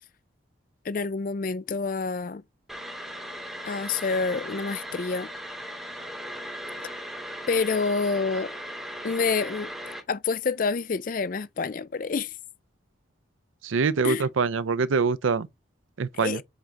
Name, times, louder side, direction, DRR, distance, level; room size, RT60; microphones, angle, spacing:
voice 1, 0.8-2.4 3.6-5.3 7.5-8.5 9.0-12.3 14.0-14.3 16.2-16.4, left 4 dB, 45° left, 0.4 m, -28 dB
sound 1, 2.7-10.0, equal, ahead, 2.3 m, -38 dB
voice 2, 13.6-15.5 16.0-16.4, right 4 dB, 80° right, 0.5 m, -24 dB
7.3 x 3.8 x 3.3 m
head